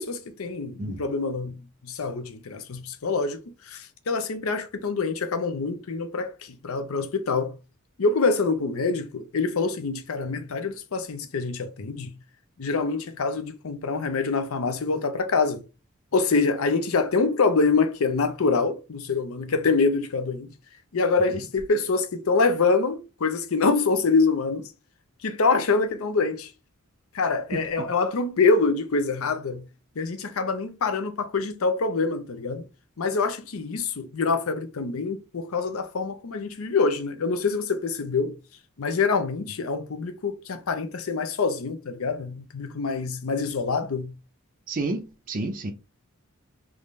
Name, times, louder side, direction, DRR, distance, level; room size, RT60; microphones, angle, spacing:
voice 1, 0.0-3.4 3.7-7.6 8.0-12.2 12.6-15.6 16.1-20.5 20.9-24.7 25.2-26.5 27.1-29.7 30.0-32.6 33.0-38.4 38.8-44.1, left 4 dB, 70° left, 0.6 m, -25 dB
voice 2, 44.7-45.7, right 2 dB, 40° right, 0.5 m, -30 dB
3.6 x 2.5 x 3.2 m
head